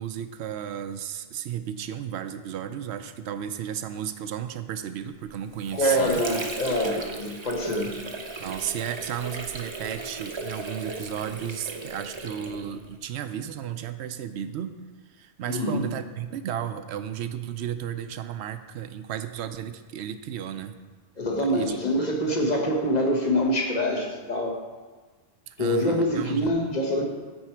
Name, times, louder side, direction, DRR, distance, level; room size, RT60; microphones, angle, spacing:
voice 1, 0.0-6.2 8.4-14.8 15.2-20.8 21.5-22.1 25.5-26.5, right 9 dB, 80° right, 11 dB, 0.8 m, -34 dB
Water / Sink (filling or washing), 5.3-13.0, right 3 dB, 30° right, 0.6 m, -37 dB
voice 2, 5.7-8.0 15.5-15.8 21.2-24.6 25.6-27.0, equal, 40° left, 1 dB, 1.3 m, -25 dB
13.0 x 4.6 x 4.4 m, 1.4 s
omnidirectional pair, 1.1 m